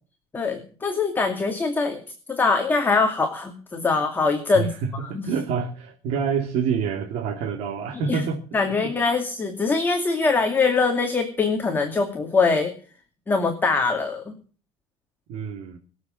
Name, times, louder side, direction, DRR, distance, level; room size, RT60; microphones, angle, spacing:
voice 1, 0.3-2.0 2.3-4.7 5.1-5.3 7.9-8.2 8.5-12.7 13.3-14.3, left 4 dB, 20° left, 3 dB, 2.4 m, -23 dB
voice 2, 4.5-8.4 8.8-8.9 15.3-15.8, right 6 dB, 70° right, 3 dB, 2.6 m, -27 dB
22.5 x 7.9 x 7.7 m, 0.42 s
cardioid pair, 135°, 11 cm